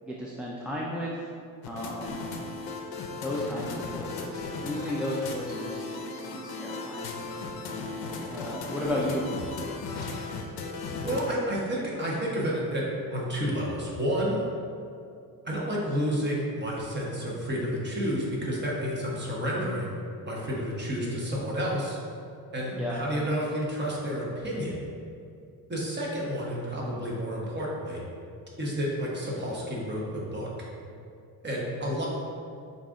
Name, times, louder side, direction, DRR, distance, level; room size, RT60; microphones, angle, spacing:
voice 1, 0.0-1.2 1.6-2.2 3.2-7.4 8.2-9.2 22.7-23.0, left 1 dB, 5° right, -5 dB, 0.4 m, -34 dB
sound 1, 1.6-11.3, left 3 dB, 75° left, 0.6 m, -36 dB
voice 2, 11.0-12.8 13.1-14.4 15.4-22.0 22.5-24.8 25.7-28.0 28.6-30.5 31.4-32.1, equal, 30° right, -4 dB, 1.2 m, -30 dB
5.3 x 2.6 x 3.7 m, 2.4 s
cardioid pair, 100°, 38 cm